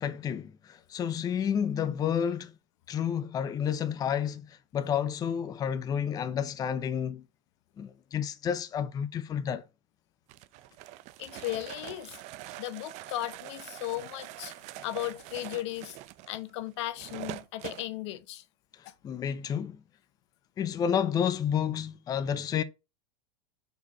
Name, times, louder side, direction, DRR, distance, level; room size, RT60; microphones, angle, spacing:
voice 1, 0.0-2.5 2.9-7.2 7.8-9.6 19.0-19.8 20.6-22.6, left 8 dB, 25° left, 0.6 m, -30 dB
sound 1, 10.3-17.9, right 15 dB, 50° right, 0.6 m, -44 dB
voice 2, 11.2-12.2 12.6-16.0 16.3-18.4 18.9-19.0, left 15 dB, 70° left, 0.8 m, -36 dB
4.8 x 4.4 x 5.3 m
supercardioid pair, 130°, 15 cm